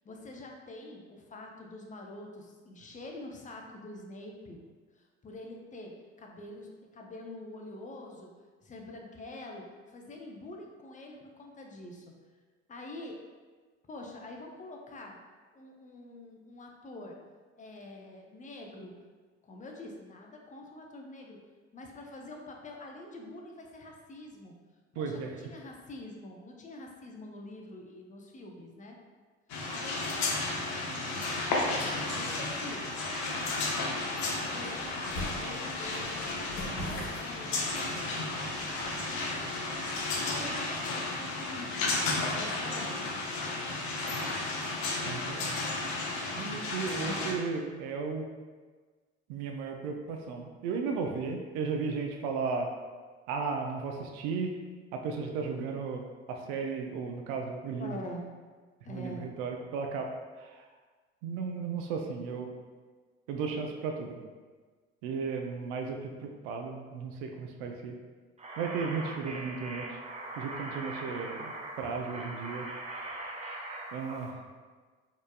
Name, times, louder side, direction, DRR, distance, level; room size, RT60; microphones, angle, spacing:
voice 1, 0.0-4.6 5.0-8.3 8.6-12.1 12.7-13.2 13.8-15.2 15.5-17.2 17.6-18.9 19.4-21.4 21.7-24.6 24.9-29.0 29.7-32.8 33.8-34.1 34.5-39.5 40.1-43.1 47.0-47.3 57.8-58.3 58.8-59.3, left 1 dB, 20° left, 1 dB, 0.6 m, -46 dB
voice 2, 25.0-25.3 45.0-45.6 46.4-48.2 49.3-52.7 53.3-54.5 54.9-57.9 58.9-60.1 60.4-60.6 61.2-62.5 63.3-64.2 65.0-68.0 68.6-70.0 70.4-72.7 73.9-74.4, right 5 dB, 65° right, 3 dB, 0.6 m, -35 dB
sound 1, 29.5-47.3, left 2 dB, 55° left, 0.8 m, -33 dB
sound 2, 31.6-40.5, equal, 75° left, 1.1 m, -45 dB
sound 3, 68.4-74.3, right 2 dB, 20° right, 0.7 m, -41 dB
4.2 x 3.1 x 2.3 m, 1.4 s
figure-of-eight pair, 55°, 35 cm